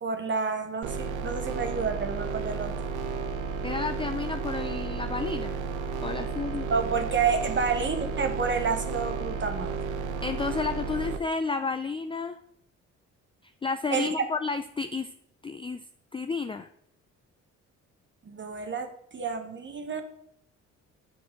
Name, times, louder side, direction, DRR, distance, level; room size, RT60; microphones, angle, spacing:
voice 1, 0.0-2.7 6.7-9.7 13.9-14.1 18.3-20.0, right 5 dB, 40° right, 5 dB, 1.0 m, -29 dB
sound 1, 0.8-11.2, right 5 dB, 85° right, 0.9 m, -32 dB
voice 2, 3.6-5.5 6.0-6.7 10.2-12.4 13.4-15.1 15.4-15.8 16.1-16.7, left 4 dB, 20° left, 8 dB, 0.4 m, -31 dB
6.4 x 4.7 x 6.4 m, 0.72 s
cardioid pair, 90°, 30 cm